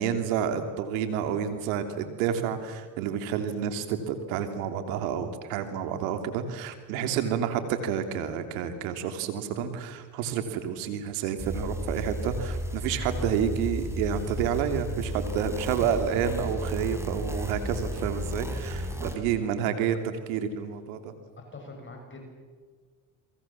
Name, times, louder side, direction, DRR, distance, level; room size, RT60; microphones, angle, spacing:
voice 1, 0.0-21.1, right 8 dB, 85° right, 8 dB, 3.0 m, -29 dB
sound 1, 11.4-19.2, equal, 5° right, 5.1 m, -33 dB
voice 2, 21.5-22.2, left 3 dB, 30° left, 2 dB, 7.4 m, -45 dB
28.5 x 23.5 x 7.4 m, 1.6 s
supercardioid pair, 80°, 40 cm